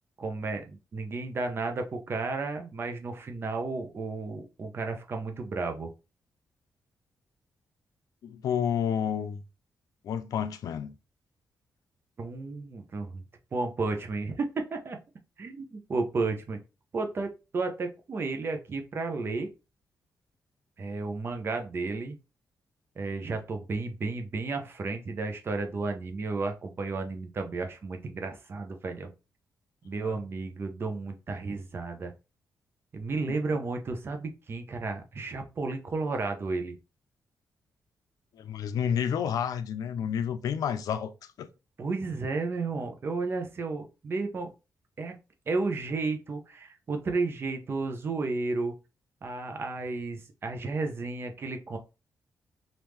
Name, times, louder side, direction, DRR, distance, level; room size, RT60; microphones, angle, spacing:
voice 1, 0.2-5.9 12.2-13.2 13.5-15.0 15.4-16.6 16.9-19.5 20.8-22.2 23.0-29.1 29.8-32.1 32.9-36.7 41.8-44.5 45.0-45.1 45.5-48.7 49.2-51.8, right 3 dB, 40° right, 0.7 m, -32 dB
voice 2, 8.2-9.4 10.0-10.9 30.0-30.2 33.3-33.4 38.4-41.5, left 8 dB, 85° left, 0.4 m, -30 dB
3.5 x 2.6 x 3.0 m
wide cardioid pair, 135°, 6 cm